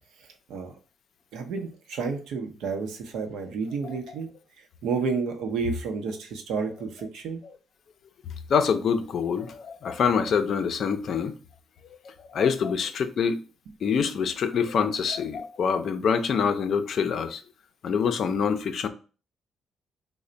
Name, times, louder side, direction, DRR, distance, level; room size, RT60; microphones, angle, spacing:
voice 1, 0.2-0.7 1.3-4.3 4.6-7.4, right 5 dB, 85° right, 0.7 m, -31 dB
voice 2, 8.5-11.4 12.0-13.4 13.8-17.4 17.8-18.9, left 6 dB, 60° left, 0.4 m, -25 dB
3.2 x 2.1 x 3.8 m
cardioid pair, 90°, 0 cm